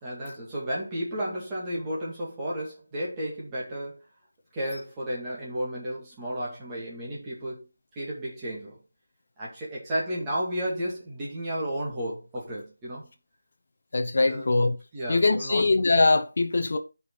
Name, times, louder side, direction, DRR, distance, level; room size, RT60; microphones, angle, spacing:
voice 1, 0.0-4.0 4.5-7.6 8.0-8.8 9.4-13.1 14.2-14.6 14.9-15.6, equal, 10° right, 2.1 m, -33 dB
voice 2, 13.9-14.8 15.1-16.8, left 3 dB, 45° left, 0.9 m, -22 dB
10.0 x 5.5 x 4.0 m
figure-of-eight pair, 180°, 0 cm